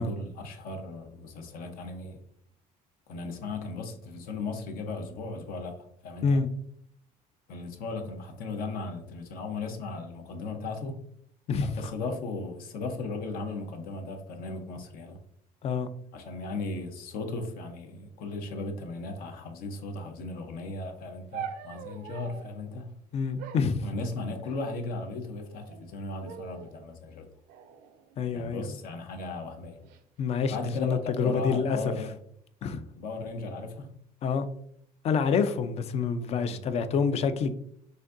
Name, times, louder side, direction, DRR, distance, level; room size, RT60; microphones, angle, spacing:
voice 1, 0.0-2.2 3.1-5.8 6.0-6.4 7.5-11.0 11.6-15.2 16.1-23.0 23.8-27.3 28.3-29.8 30.5-32.2 32.9-33.9 36.5-36.6, left 3 dB, 70° left, 5 dB, 0.8 m, -36 dB
voice 2, 11.5-11.9 15.6-15.9 23.1-23.9 28.2-28.7 30.2-31.8 32.6-32.8 34.2-34.5 35.0-37.5, left 5 dB, 40° left, 11 dB, 0.4 m, -27 dB
sound 1, 21.3-22.6 23.4-24.6 25.4-25.9 26.2-26.8 27.5-28.8 29.6-30.0, right 8 dB, 85° right, 0.5 m, -44 dB
6.3 x 2.6 x 2.5 m, 0.68 s
cardioid pair, 145°, 16 cm